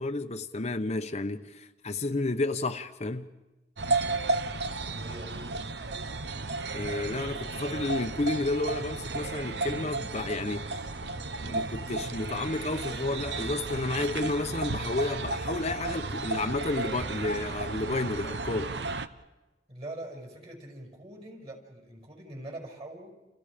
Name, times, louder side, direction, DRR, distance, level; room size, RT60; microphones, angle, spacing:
voice 1, 0.0-3.3 6.7-10.8 11.4-18.7, left 2 dB, 40° left, 0.9 m, -31 dB
sound 1, 3.8-19.1, right 3 dB, 70° right, 1.0 m, -33 dB
voice 2, 4.9-5.5 19.7-23.1, right 1 dB, 35° right, 6.4 m, -43 dB
30.0 x 30.0 x 5.1 m
head